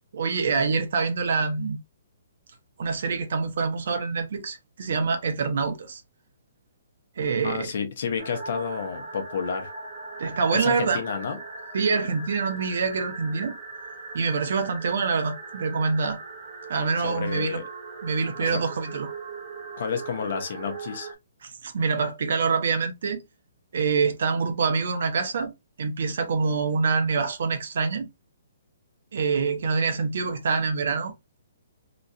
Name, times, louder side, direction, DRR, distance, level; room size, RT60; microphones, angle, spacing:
voice 1, 0.1-1.8 2.8-6.0 7.2-7.7 10.2-11.0 11.7-13.5 14.1-16.2 16.7-17.6 18.0-19.1 21.4-23.2 23.7-25.5 25.8-28.1 29.1-31.1, right 5 dB, 65° right, 0.8 m, -25 dB
voice 2, 7.4-9.7 10.5-11.4 17.0-17.6 18.4-18.6 19.8-21.1, left 6 dB, 60° left, 0.9 m, -30 dB
sound 1, 8.2-21.1, right 3 dB, 30° right, 1.0 m, -39 dB
3.1 x 2.4 x 2.6 m
hypercardioid pair, 160°, 0 cm